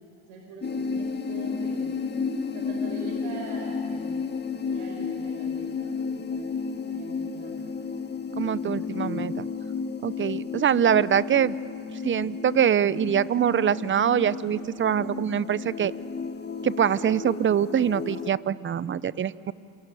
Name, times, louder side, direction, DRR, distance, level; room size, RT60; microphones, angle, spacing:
voice 1, 0.2-1.9 2.4-4.0 4.5-7.9, right 3 dB, 80° right, 1 dB, 5.2 m, -43 dB
sound 1, 0.6-18.3, left 5 dB, 25° left, 1.7 m, -32 dB
voice 2, 8.4-9.5 10.0-11.5 12.0-15.9 16.6-19.5, right 9 dB, 30° right, 18 dB, 0.7 m, -24 dB
28.5 x 22.5 x 9.2 m, 2.9 s
supercardioid pair, 90°, 42 cm